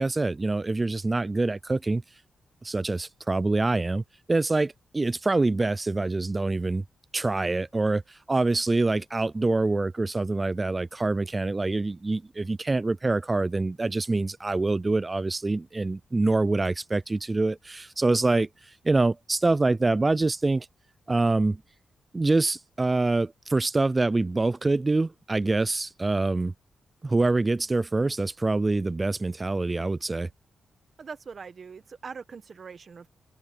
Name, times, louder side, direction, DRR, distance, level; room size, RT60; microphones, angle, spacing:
voice 1, 0.0-2.0 2.6-4.0 4.3-6.8 7.1-8.0 8.3-18.5 18.8-20.7 21.1-21.6 22.1-26.5 27.0-30.3, right 2 dB, 20° right, 0.3 m, -25 dB
voice 2, 31.0-33.1, right 5 dB, 45° right, 1.1 m, -42 dB
open air
cardioid pair, 105°, 0 cm